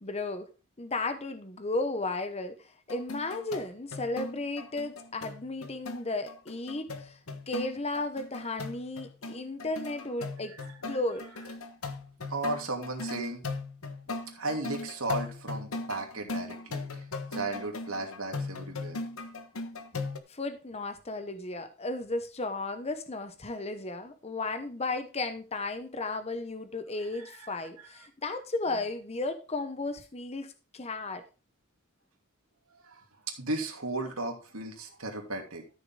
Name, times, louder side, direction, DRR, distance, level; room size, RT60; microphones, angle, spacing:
voice 1, 0.0-0.5 0.8-7.2 7.5-10.5 10.9-11.2 20.3-31.2, left 2 dB, 30° left, 9 dB, 1.0 m, -34 dB
sound 1, 2.9-20.2, left 3 dB, 80° left, 1.3 m, -38 dB
voice 2, 12.3-13.5 14.3-17.0 17.3-19.0 27.0-28.1 32.7-35.7, right 2 dB, 90° right, 2 dB, 2.9 m, -36 dB
13.0 x 6.9 x 3.8 m, 0.32 s
head